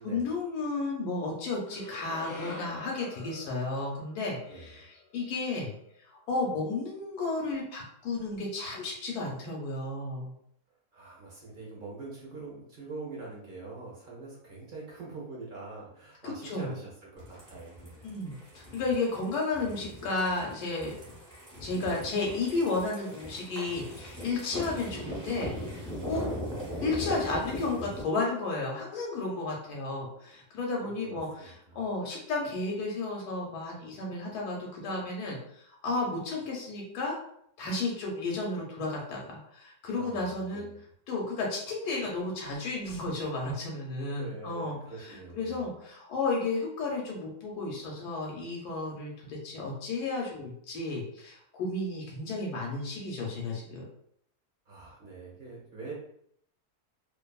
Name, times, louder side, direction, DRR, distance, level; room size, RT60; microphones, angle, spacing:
voice 1, 0.0-5.7 6.0-10.3 16.2-16.7 18.0-20.9 21.6-25.5 26.1-26.2 26.8-37.2 37.6-40.7 41.1-53.8, left 3 dB, 85° left, -2 dB, 1.2 m, -33 dB
sound 1, 1.7-5.9, left 3 dB, 60° left, 0.7 m, -46 dB
voice 2, 10.9-18.1 30.8-31.8 39.9-40.8 44.0-45.6 54.7-55.9, right 3 dB, 45° right, -4 dB, 0.7 m, -44 dB
sound 2, 17.2-28.0, equal, 15° right, 1.0 m, -40 dB
2.5 x 2.5 x 2.3 m, 0.68 s
omnidirectional pair, 1.6 m